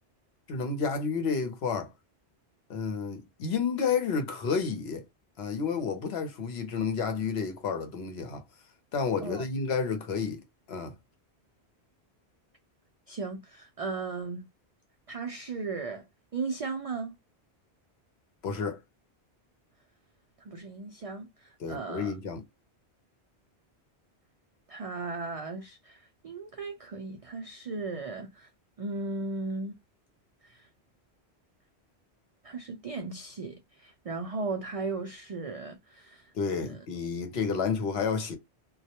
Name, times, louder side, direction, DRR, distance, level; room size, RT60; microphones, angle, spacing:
voice 1, 0.5-1.9 2.7-5.0 5.4-8.4 8.9-10.4 10.7-10.9 18.4-18.8 21.6-22.4 36.3-38.4, left 5 dB, 70° left, 0.9 m, -30 dB
voice 2, 13.1-14.5 15.1-16.0 16.3-17.2 20.4-22.1 24.7-28.5 28.8-29.7 30.4-30.7 32.4-36.8, right 3 dB, 60° right, 0.3 m, -36 dB
2.3 x 2.1 x 2.8 m
omnidirectional pair, 1.1 m